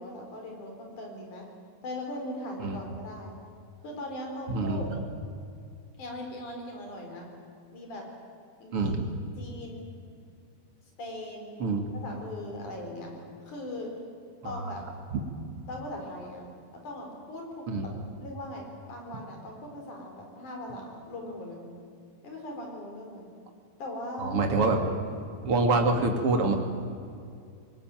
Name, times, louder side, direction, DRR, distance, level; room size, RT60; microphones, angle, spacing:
voice 1, 0.0-1.5 1.8-3.3 3.8-4.9 6.0-7.3 7.7-8.1 8.6-9.0 9.4-9.9 11.0-11.6 12.0-13.1 13.5-13.9 14.4-14.8 15.7-16.5 16.8-17.9 18.2-21.6 22.2-23.3 23.8-24.4, left 1 dB, 55° left, 2 dB, 5.6 m, -39 dB
voice 2, 4.5-4.8 8.7-9.0 11.6-11.9 14.4-14.7 15.1-15.2 17.7-17.9 24.2-24.8 25.4-26.5, right 3 dB, 40° right, 3 dB, 2.8 m, -26 dB
25.0 x 19.0 x 9.1 m, 2.4 s
omnidirectional pair, 4.4 m